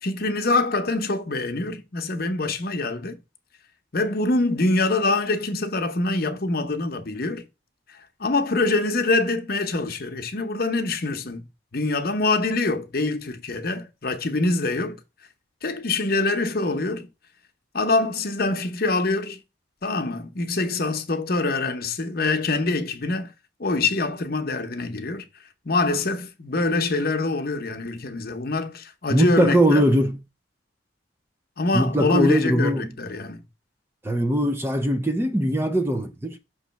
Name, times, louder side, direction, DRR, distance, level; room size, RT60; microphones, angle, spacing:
voice 1, 0.0-3.2 3.9-7.4 8.2-11.5 11.7-15.0 15.6-17.1 17.7-19.4 19.8-23.3 23.6-25.3 25.6-29.8 31.6-33.4, left 2 dB, 50° left, 0.8 m, -24 dB
voice 2, 29.1-30.2 31.7-32.9 34.0-36.4, equal, 15° right, 0.5 m, -21 dB
6.1 x 3.1 x 5.7 m
head